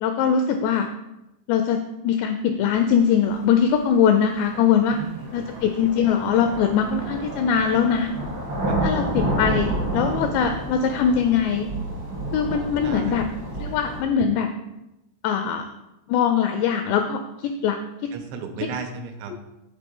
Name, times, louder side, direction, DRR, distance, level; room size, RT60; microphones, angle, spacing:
voice 1, 0.0-0.9 1.5-5.0 5.3-8.1 8.8-11.7 12.3-13.2 13.6-14.5 15.2-15.6 16.1-17.8 18.0-18.1 18.6-18.7 19.3-19.4, left 7 dB, 85° left, 6 dB, 2.4 m, -22 dB
sound 1, 3.4-3.5 4.5-14.0, right 1 dB, 65° right, 1.1 m, -30 dB
voice 2, 4.9-5.5 8.7-8.8 12.8-13.2 18.1-19.3, right 5 dB, 90° right, 5 dB, 3.1 m, -34 dB
7.3 x 4.5 x 5.2 m, 0.92 s
omnidirectional pair, 5.4 m